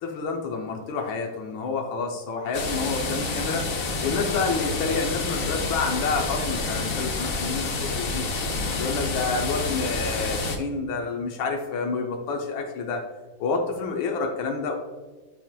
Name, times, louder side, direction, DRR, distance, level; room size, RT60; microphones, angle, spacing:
voice 1, 0.0-3.7 4.0-8.3 8.8-13.0 13.4-14.7, left 4 dB, 90° left, 1 dB, 1.5 m, -29 dB
sound 1, 2.5-10.6, left 3 dB, 55° left, 1.0 m, -28 dB
10.5 x 4.3 x 2.2 m, 1.3 s
omnidirectional pair, 2.1 m